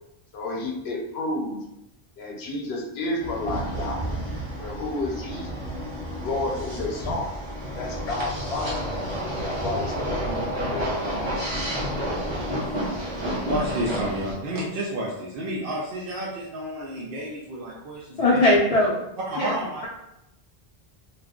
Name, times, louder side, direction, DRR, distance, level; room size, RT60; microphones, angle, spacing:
voice 1, 0.3-1.6 2.2-4.2 4.6-5.6 6.1-7.3 7.8-8.8 9.4-11.9, left 2 dB, 80° left, 0 dB, 0.9 m, -31 dB
sound 1, 3.2-14.3, equal, 30° right, 0.8 m, -30 dB
voice 2, 12.6-13.2 13.4-18.5 19.3-19.9, right 1 dB, 65° right, -4 dB, 0.7 m, -31 dB
voice 3, 18.2-19.0 19.4-19.5, left 2 dB, 50° left, -4 dB, 0.5 m, -19 dB
2.3 x 2.2 x 3.5 m, 0.84 s
omnidirectional pair, 1.1 m